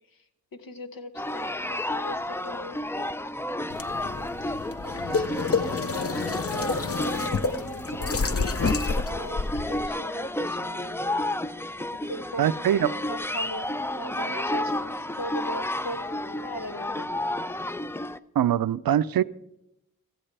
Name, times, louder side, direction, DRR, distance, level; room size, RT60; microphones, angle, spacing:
voice 1, 0.5-2.8 3.9-4.5 4.8-6.1 6.5-11.0 12.1-12.5 12.8-17.1 17.5-17.8, left 1 dB, 70° left, 1.2 m, -40 dB
sound 1, 1.1-18.2, left 1 dB, 5° left, 0.4 m, -31 dB
sound 2, 3.7-9.9, left 4 dB, 40° left, 0.7 m, -29 dB
voice 2, 12.4-12.9 18.4-19.2, right 10 dB, 80° right, 0.5 m, -22 dB
15.5 x 14.5 x 3.3 m
cardioid pair, 40°, 35 cm